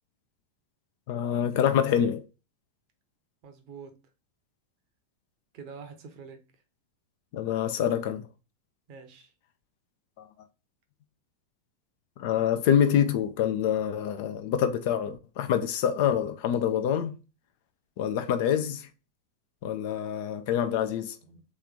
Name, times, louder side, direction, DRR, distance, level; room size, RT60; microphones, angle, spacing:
voice 1, 1.1-2.2 7.3-8.3 12.2-17.1 18.0-18.9 19.6-21.1, left 9 dB, 50° left, 0.5 m, -26 dB
voice 2, 3.4-4.0 5.5-6.4 8.9-9.3 21.2-21.4, right 5 dB, 45° right, 0.9 m, -46 dB
3.2 x 3.1 x 3.5 m
figure-of-eight pair, 90°, 0 cm